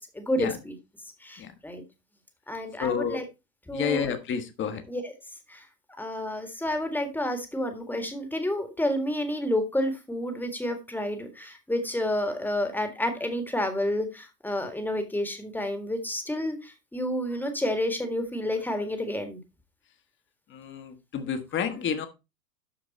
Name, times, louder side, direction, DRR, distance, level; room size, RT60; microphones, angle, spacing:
voice 1, 0.1-0.7 1.2-1.8 2.5-3.2 3.7-4.1 4.9-5.1 5.5-5.6 6.0-19.4, left 1 dB, 5° left, 6 dB, 1.8 m, -30 dB
voice 2, 2.8-3.2 3.7-4.8 20.5-22.1, left 7 dB, 25° left, 8 dB, 1.5 m, -30 dB
12.5 x 4.6 x 4.2 m, 0.26 s
figure-of-eight pair, 100°, 50 cm